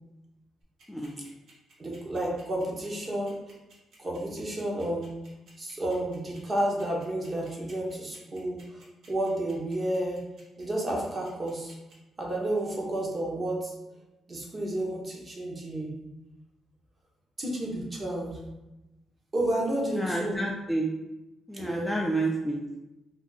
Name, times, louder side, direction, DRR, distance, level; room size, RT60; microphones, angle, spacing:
sound 1, 0.6-11.9, right 2 dB, 70° right, 1.2 m, -57 dB
voice 1, 0.9-1.2 19.9-20.9 21.5-22.8, right 1 dB, 5° left, -1 dB, 0.3 m, -30 dB
voice 2, 1.8-3.4 4.0-5.1 5.6-8.8 9.1-10.2 10.6-11.7 12.2-13.7 14.3-15.9 17.4-18.4 19.3-20.4 21.5-21.9, right 1 dB, 30° right, -2 dB, 0.9 m, -31 dB
2.6 x 2.6 x 3.9 m, 0.99 s
cardioid pair, 105°, 0 cm